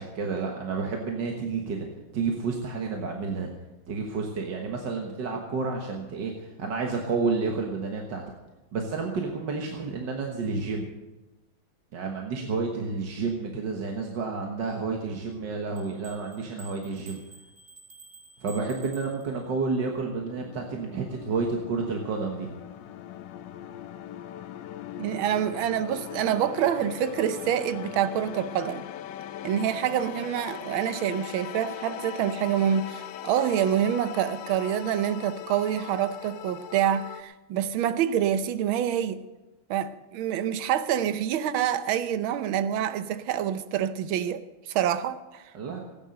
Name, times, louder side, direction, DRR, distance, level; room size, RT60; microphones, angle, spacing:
voice 1, 0.0-1.9 2.1-3.5 3.9-8.2 8.7-10.9 11.9-17.2 18.4-22.5 45.5-45.8, right 4 dB, 60° right, 1.9 m, -30 dB
sound 1, 15.7-19.7, right 3 dB, 25° right, 1.0 m, -51 dB
sound 2, 18.9-37.2, left 11 dB, 70° left, 1.2 m, -40 dB
voice 2, 25.0-28.8 29.4-39.2 39.7-45.4, right 10 dB, 75° right, 1.6 m, -27 dB
16.5 x 10.0 x 6.5 m
omnidirectional pair, 2.3 m